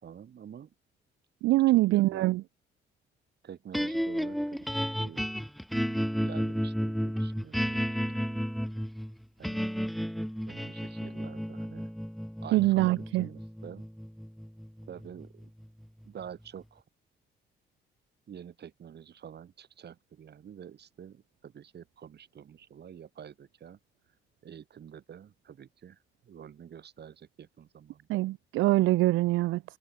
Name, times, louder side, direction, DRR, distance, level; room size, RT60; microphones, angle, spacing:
voice 1, 0.0-0.7 1.5-2.4 3.4-5.3 5.7-8.5 9.4-9.7 10.5-11.9 12.4-13.9 14.9-15.5 16.0-16.8 18.3-23.8 24.4-28.1, right 8 dB, 55° right, 4.9 m, -47 dB
voice 2, 1.4-2.4 12.5-13.3 28.1-29.6, right 18 dB, 85° right, 0.5 m, -24 dB
sound 1, 3.7-16.0, equal, ahead, 0.9 m, -33 dB
cardioid pair, 90°, 20 cm